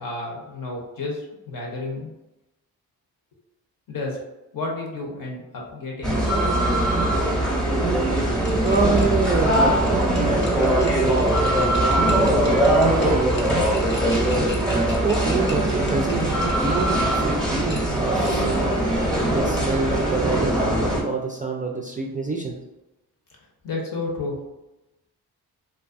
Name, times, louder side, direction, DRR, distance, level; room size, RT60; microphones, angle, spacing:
voice 1, 0.0-2.1 3.9-4.2 4.5-6.2 23.6-24.4, left 2 dB, 55° left, -1 dB, 0.9 m, -31 dB
sound 1, 6.0-21.0, right 1 dB, ahead, 0.8 m, -21 dB
sound 2, 8.1-17.2 17.7-18.6, left 1 dB, 30° left, 0.6 m, -41 dB
voice 2, 8.5-13.4 14.3-18.7 19.3-22.5, right 4 dB, 20° right, -1 dB, 0.3 m, -27 dB
2.5 x 2.2 x 2.4 m, 0.97 s
supercardioid pair, 45°, 41 cm